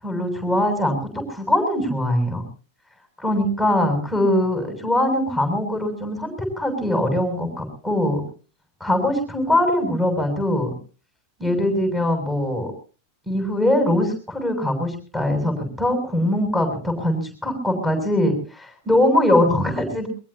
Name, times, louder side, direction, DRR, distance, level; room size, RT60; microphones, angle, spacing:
voice 1, 0.0-2.4 3.2-8.2 8.8-10.7 11.4-12.7 13.3-20.1, left 1 dB, ahead, 4 dB, 7.4 m, -22 dB
22.5 x 22.5 x 2.9 m, 0.38 s
figure-of-eight pair, 90°, 0 cm